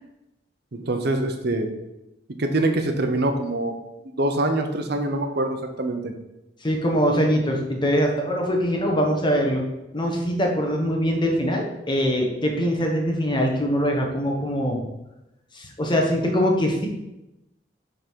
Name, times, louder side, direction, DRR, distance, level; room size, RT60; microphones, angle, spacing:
voice 1, 0.8-1.7 2.4-3.7 4.0-6.1, right 2 dB, 60° right, 5 dB, 0.9 m, -24 dB
voice 2, 6.6-9.6 9.9-14.8 15.5-16.9, equal, 25° left, 1 dB, 1.2 m, -23 dB
8.2 x 3.9 x 4.6 m, 0.93 s
head